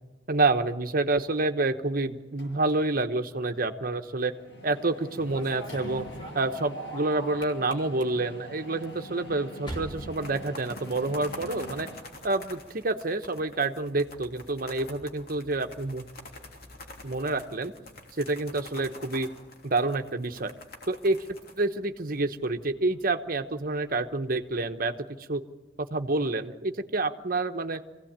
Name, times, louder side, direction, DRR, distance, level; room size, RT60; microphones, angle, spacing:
voice 1, 0.3-4.3 4.6-6.1 6.3-11.9 12.2-16.0 17.0-17.7 18.2-19.3 19.6-20.5 20.9-21.3 21.6-24.9 25.3-25.4 25.8-27.8, right 2 dB, 50° right, 7 dB, 1.1 m, -28 dB
Mechanisms, 2.4-3.0 3.3-3.5 3.8-12.0, equal, 70° left, 6.4 m, -44 dB
sound 1, 5.0-11.2 11.5-12.0 13.1-24.8, equal, 25° left, 4.0 m, -50 dB
sound 2, 8.8-9.3 9.5-9.6 10.0-22.5, left 2 dB, 55° left, 3.2 m, -46 dB
24.0 x 16.5 x 8.9 m, 1.3 s
head